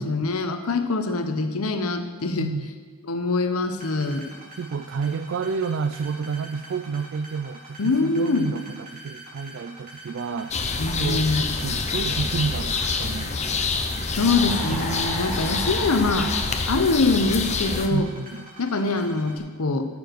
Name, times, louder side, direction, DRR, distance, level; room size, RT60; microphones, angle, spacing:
voice 1, 0.0-2.5 3.1-4.3 7.8-8.5 10.8-11.4 14.2-16.3 16.7-18.1 18.6-19.9, left 3 dB, 85° left, 8 dB, 0.9 m, -24 dB
sound 1, 3.8-19.4, right 1 dB, 40° right, 2.6 m, -44 dB
voice 2, 4.6-10.5 10.9-13.7 14.7-15.2 17.9-18.4, right 5 dB, 60° right, 11 dB, 0.3 m, -30 dB
sound 2, 10.5-17.9, left 4 dB, 30° left, 0.7 m, -27 dB
sound 3, 14.2-16.5, equal, 5° right, 3.4 m, -33 dB
14.0 x 7.0 x 4.6 m, 1.5 s
head